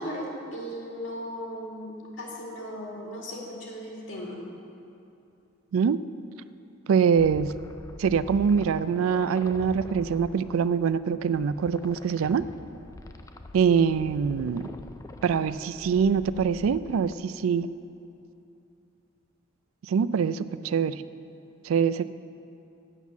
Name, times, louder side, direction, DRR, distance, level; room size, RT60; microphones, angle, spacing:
voice 1, 0.0-4.4, equal, 65° left, -2 dB, 2.1 m, -37 dB
voice 2, 6.9-7.5 8.0-12.4 13.5-14.7 15.2-17.7 19.9-21.0 21.6-22.1, right 6 dB, 90° right, 15 dB, 0.3 m, -24 dB
sound 1, 7.1-17.2, left 2 dB, 15° left, 0.3 m, -45 dB
8.2 x 7.2 x 8.3 m, 2.7 s
head